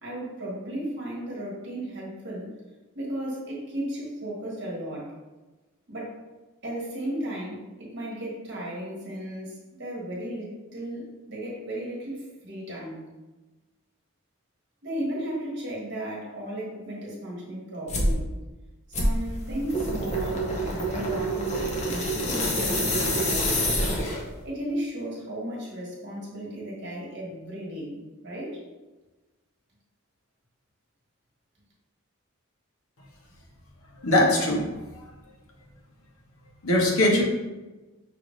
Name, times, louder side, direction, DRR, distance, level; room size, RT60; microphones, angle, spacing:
voice 1, 0.0-2.5 2.9-5.1 5.9-6.2 6.6-13.0 14.8-18.3 18.9-23.7 24.4-28.6, right 1 dB, 50° right, -5 dB, 1.3 m, -35 dB
sound 1, 17.9-18.2 18.9-24.4, equal, 30° left, 0.6 m, -26 dB
voice 2, 34.0-35.0 36.6-37.2, left 1 dB, 80° left, -2 dB, 1.0 m, -22 dB
5.6 x 2.5 x 3.1 m, 1.1 s
head